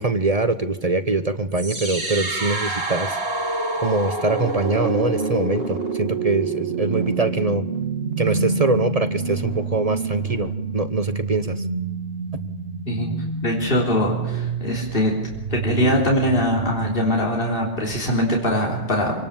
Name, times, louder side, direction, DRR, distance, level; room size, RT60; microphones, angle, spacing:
voice 1, 0.0-3.2 3.8-7.6 8.2-11.6, right 3 dB, 35° right, 10 dB, 0.9 m, -23 dB
sound 1, 1.5-17.5, right 4 dB, 55° right, 2.8 m, -28 dB
voice 2, 13.4-15.2 15.5-19.1, equal, 50° left, -2 dB, 3.8 m, -22 dB
25.5 x 18.5 x 7.2 m, 1.0 s
omnidirectional pair, 1.2 m